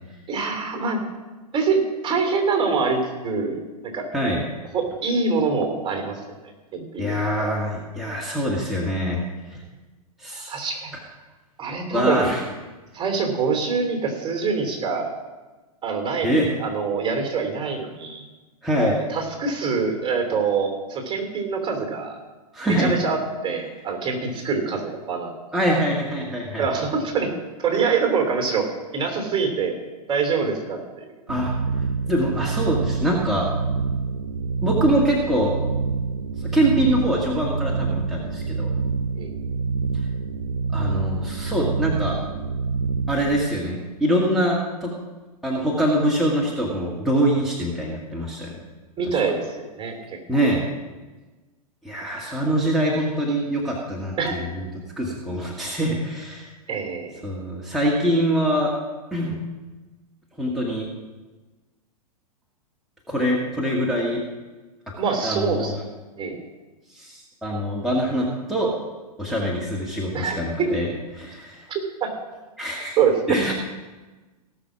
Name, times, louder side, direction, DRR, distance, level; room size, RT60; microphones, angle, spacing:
voice 1, 0.3-1.0 1.5-4.1 4.7-6.2 6.7-7.5 10.5-10.9 11.6-12.3 12.9-15.1 15.8-18.2 19.1-22.2 22.8-25.3 26.6-27.3 27.6-29.7 30.1-31.0 39.2-39.3 49.0-49.9 50.4-50.5 54.2-54.3 56.7-57.2 65.0-65.7 66.2-66.4 70.1-70.8 71.7-72.1 73.0-73.4, right 5 dB, 25° right, 3 dB, 2.9 m, -25 dB
voice 2, 7.0-9.2 9.5-9.6 10.2-10.5 11.9-12.4 16.2-16.5 18.6-19.0 22.5-22.9 25.5-26.6 31.3-31.5 32.1-33.5 34.6-35.5 36.4-38.7 40.7-42.2 43.1-44.9 45.4-48.5 49.1-49.2 50.3-50.6 51.8-54.7 55.0-56.5 57.2-58.7 59.1-59.4 60.4-60.9 63.1-64.2 64.9-65.0 65.2-65.7 66.9-68.7 69.2-70.9 71.1-71.6 72.6-73.0 73.3-73.6, equal, ahead, -5 dB, 2.0 m, -24 dB
sound 1, 31.3-43.4, right 4 dB, 80° right, 0.8 m, -26 dB
17.5 x 6.3 x 6.2 m, 1.2 s
hypercardioid pair, 110°, 20 cm